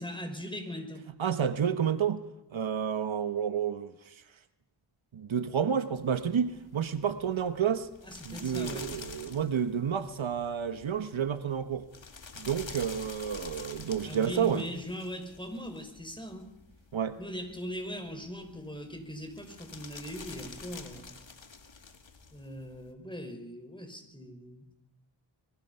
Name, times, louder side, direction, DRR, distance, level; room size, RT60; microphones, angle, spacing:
voice 1, 0.0-1.1 8.0-8.9 14.0-16.5 17.2-21.1 22.3-24.7, equal, 10° left, 5.7 m, -40 dB
voice 2, 1.2-2.2 2.5-3.9 5.1-7.9 8.2-11.9 12.4-14.6 16.9-17.2, right 8 dB, 85° right, 1.2 m, -30 dB
sound 1, 6.0-22.9, left 4 dB, 75° left, 2.6 m, -49 dB
25.0 x 23.0 x 5.6 m
cardioid pair, 45°, 46 cm